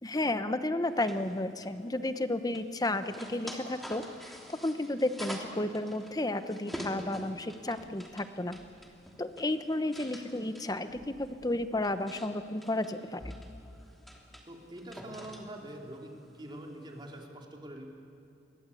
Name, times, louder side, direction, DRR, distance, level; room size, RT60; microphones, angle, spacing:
voice 1, 0.0-4.0 4.6-8.6 9.2-13.4, left 1 dB, 20° left, 10 dB, 1.0 m, -32 dB
sound 1, 0.8-17.3, equal, ahead, 3.0 m, -48 dB
voice 2, 14.5-17.9, right 1 dB, 25° right, 0 dB, 3.2 m, -45 dB
28.5 x 23.0 x 8.5 m, 2.5 s
head